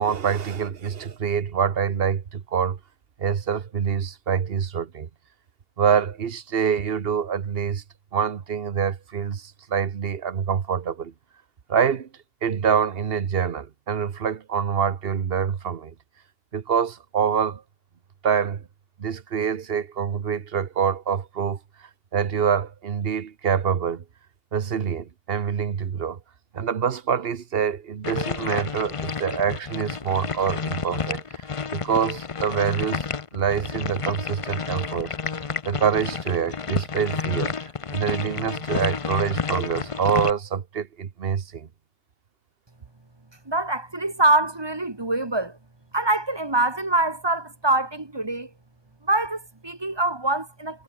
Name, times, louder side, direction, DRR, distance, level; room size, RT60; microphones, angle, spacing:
voice 1, 0.0-2.8 3.2-5.1 5.8-7.8 8.1-11.1 11.7-12.1 12.4-15.9 16.5-17.6 18.2-18.6 19.0-24.0 24.5-26.2 26.5-31.4 31.7-33.1 33.3-35.1 35.6-41.7, right 7 dB, 65° right, 1.2 m, -25 dB
sound 1, 28.0-40.3, left 5 dB, 35° left, 0.7 m, -30 dB
voice 2, 43.4-45.6 45.9-48.5 49.0-50.8, right 2 dB, 25° right, 1.4 m, -24 dB
omnidirectional pair, 1.1 m